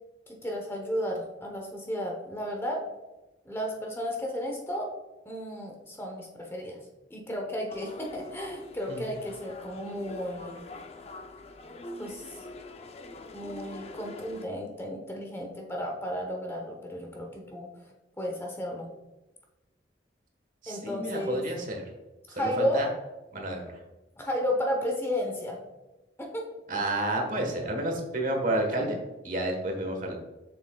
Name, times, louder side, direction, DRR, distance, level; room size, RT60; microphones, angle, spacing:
voice 1, 0.3-2.8 3.4-4.9 5.3-6.8 7.1-10.6 12.0-12.4 13.3-17.7 18.2-18.9 20.7-21.4 22.3-22.8 24.2-25.6 26.2-26.4, equal, 15° left, 0 dB, 0.9 m, -33 dB
sound 1, 7.7-14.5, left 2 dB, 35° left, 0.5 m, -44 dB
voice 2, 20.6-21.8 22.3-22.9 23.3-23.8 26.7-29.0 29.2-30.1, right 1 dB, 50° right, 2 dB, 1.4 m, -30 dB
7.4 x 6.1 x 2.3 m, 1.1 s
head